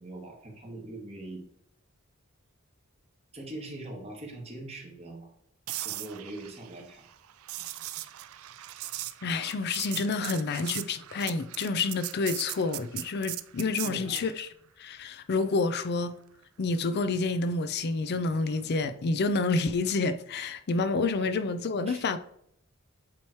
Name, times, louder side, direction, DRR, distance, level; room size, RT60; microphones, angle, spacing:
voice 1, 0.0-1.4 3.3-5.3 5.8-7.1 13.8-14.3 21.9-22.0, right 2 dB, 30° right, 1.6 m, -42 dB
sound 1, 5.7-14.3 18.5-18.7, right 15 dB, 85° right, 0.4 m, -39 dB
voice 2, 9.2-14.5 14.8-16.2 16.6-22.2, left 3 dB, 50° left, 0.5 m, -28 dB
8.5 x 3.1 x 4.4 m
head